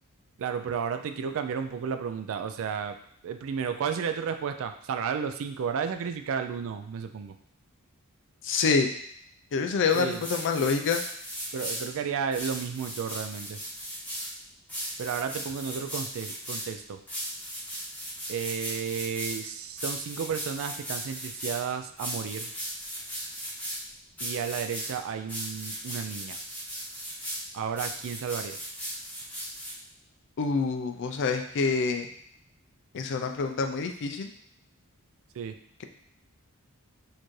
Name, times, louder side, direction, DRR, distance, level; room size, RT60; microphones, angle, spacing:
voice 1, 0.4-3.0 3.2-7.3 9.9-10.3 11.5-13.6 15.0-17.0 18.3-22.5 24.2-26.4 27.5-28.6 35.3-35.6, right 7 dB, 65° right, 8 dB, 0.3 m, -32 dB
voice 2, 8.4-8.9 9.5-11.0 30.4-32.1 32.9-34.3, left 4 dB, 55° left, 5 dB, 0.4 m, -26 dB
sound 1, 9.8-11.9 12.3-14.3 14.7-16.7 17.1-19.4 19.8-21.6 22.0-23.8 24.2-24.9 25.3-27.4 27.8-29.7, equal, 5° left, 1.0 m, -37 dB
4.3 x 2.6 x 3.1 m, 0.66 s
head